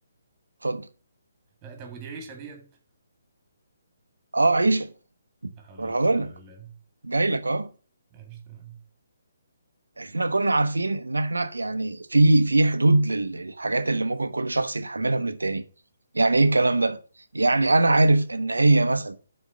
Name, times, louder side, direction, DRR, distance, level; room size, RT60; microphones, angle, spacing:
voice 1, 1.6-2.7 5.5-6.8 8.1-8.8, right 5 dB, 20° right, 2.2 m, -43 dB
voice 2, 4.3-4.9 5.8-6.3 7.0-7.7 10.0-15.6 16.1-17.0 17.3-19.2, right 2 dB, 75° right, 0.8 m, -22 dB
6.4 x 4.5 x 6.3 m
figure-of-eight pair, 140°, 0 cm